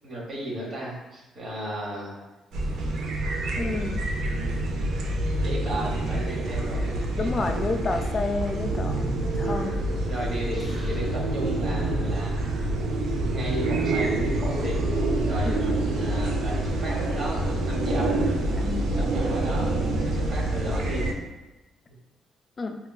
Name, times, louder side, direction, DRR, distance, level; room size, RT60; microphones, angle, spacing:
voice 1, 0.0-2.1 2.7-3.2 3.7-3.9 5.2-8.1 10.1-12.9 13.3-14.8 15.2-18.1 19.1-21.1, right 1 dB, 55° right, -4 dB, 1.1 m, -35 dB
sound 1, 2.5-21.1, right 2 dB, 80° right, 0.5 m, -27 dB
voice 2, 3.6-4.0 7.2-9.8 15.4-15.6 18.5-19.0 22.6-22.8, left 3 dB, 35° left, 6 dB, 0.3 m, -30 dB
sound 2, 10.4-12.6, left 1 dB, 20° left, 0.8 m, -43 dB
4.3 x 2.2 x 2.3 m, 1.1 s
cardioid pair, 90°, 0 cm